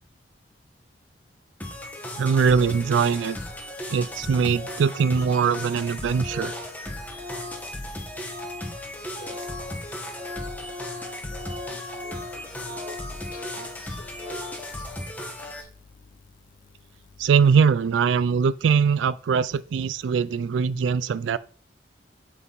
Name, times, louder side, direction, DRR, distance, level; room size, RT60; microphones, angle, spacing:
sound 1, 1.6-15.6, left 1 dB, 10° left, 1.1 m, -36 dB
voice 1, 2.2-3.4 3.9-6.6 17.2-21.4, right 6 dB, 85° right, 0.3 m, -22 dB
Organ, 3.6-3.7 3.9-4.0 4.2-4.3 4.5-4.9 5.2-8.8 9.1-14.7, left 3 dB, 25° right, 1.1 m, -40 dB
voice 2, 11.3-12.5 12.9-13.0 13.3-13.7 14.0-14.4, left 3 dB, 45° left, 0.6 m, -46 dB
8.1 x 5.6 x 4.0 m
head